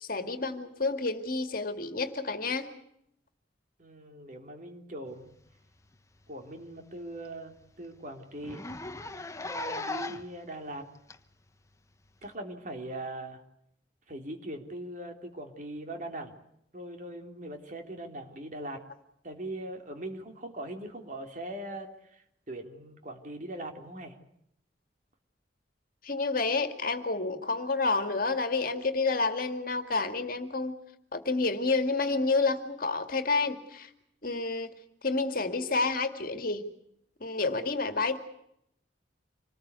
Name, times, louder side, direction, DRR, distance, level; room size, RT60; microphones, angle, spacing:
voice 1, 0.0-2.7 26.0-30.8 31.1-33.9 34.2-34.7 35.0-36.6 37.2-38.2, left 3 dB, 50° left, 7 dB, 2.2 m, -29 dB
voice 2, 3.8-5.3 6.3-8.6 9.4-10.9 12.2-13.4 14.1-16.3 16.7-18.8 19.2-24.2, right 1 dB, 45° right, 4 dB, 3.4 m, -41 dB
Zipper (clothing), 5.8-5.9 6.3-6.4 6.8-6.9 7.2-7.3 7.6-7.7 8.4-10.4 11.1-11.2 12.2-12.3, left 2 dB, 15° left, 1.0 m, -37 dB
27.0 x 20.0 x 8.3 m, 0.76 s
head